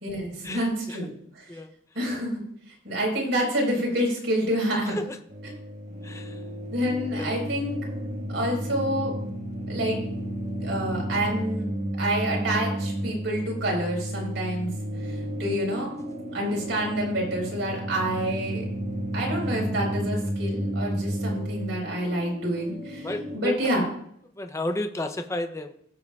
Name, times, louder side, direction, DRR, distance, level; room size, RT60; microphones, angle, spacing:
voice 1, 0.0-1.5 1.9-2.4 2.8-5.0 6.7-7.8 8.3-9.1 9.7-10.0 10.6-11.7 12.0-14.7 15.0-15.9 16.3-18.6 19.1-23.9, right 1 dB, 65° right, -2 dB, 4.3 m, -28 dB
sound 1, 5.3-23.4, equal, 40° right, 1.4 m, -32 dB
voice 2, 6.0-6.3 7.2-7.4 23.0-23.6 24.4-25.7, left 1 dB, 15° left, 7 dB, 0.6 m, -31 dB
16.0 x 7.2 x 2.4 m, 0.67 s
head